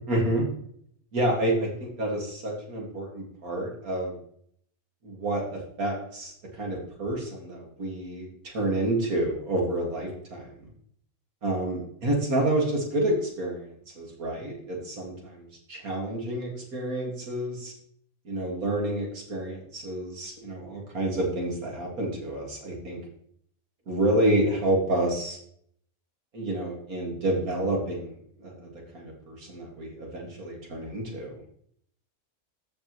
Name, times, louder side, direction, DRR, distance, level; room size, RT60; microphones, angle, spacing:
voice 1, 0.1-0.5 1.1-4.2 5.0-10.5 11.4-17.7 18.2-23.0 23.9-25.4 26.3-28.1 28.4-31.4, right 1 dB, 90° right, -1 dB, 2.6 m, -29 dB
15.0 x 5.2 x 3.1 m, 0.65 s
omnidirectional pair, 1.5 m